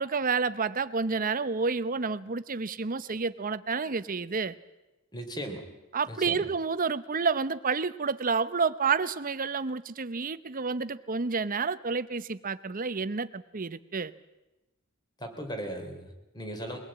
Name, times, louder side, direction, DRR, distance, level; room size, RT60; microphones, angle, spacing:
voice 1, 0.0-4.6 5.9-14.1, right 5 dB, 40° right, 13 dB, 0.8 m, -29 dB
voice 2, 5.1-5.7 6.1-6.5 15.2-16.8, equal, 20° left, 5 dB, 3.4 m, -37 dB
23.0 x 19.0 x 8.8 m, 1.0 s
head